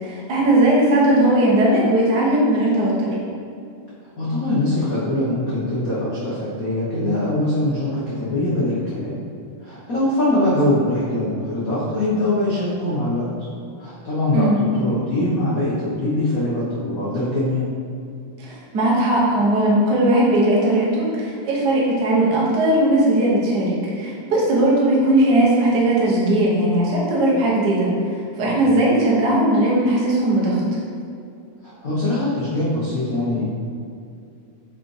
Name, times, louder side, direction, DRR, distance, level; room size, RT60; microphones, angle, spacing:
voice 1, 0.0-3.2 14.3-14.6 18.4-30.6, right 1 dB, 50° right, -5 dB, 1.3 m, -18 dB
voice 2, 4.2-9.1 9.6-13.3 13.8-17.7 31.6-33.4, left 1 dB, 90° left, -9 dB, 0.7 m, -22 dB
5.3 x 5.1 x 4.7 m, 2.5 s
omnidirectional pair, 3.5 m